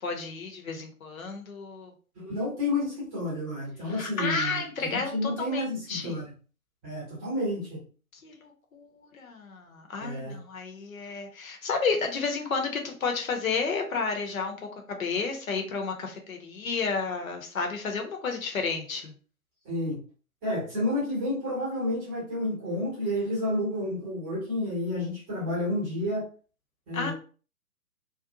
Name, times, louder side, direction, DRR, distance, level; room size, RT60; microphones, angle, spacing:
voice 1, 0.0-1.9 3.9-5.6 5.9-6.1 8.2-14.6 14.9-19.1 26.9-27.1, left 4 dB, 65° left, 3 dB, 0.8 m, -31 dB
voice 2, 2.1-6.3 6.8-7.8 10.0-10.4 19.6-20.0 20.4-26.3 26.9-27.1, left 1 dB, 10° right, -6 dB, 0.7 m, -30 dB
2.5 x 2.3 x 2.6 m, 0.38 s
figure-of-eight pair, 135°, 45 cm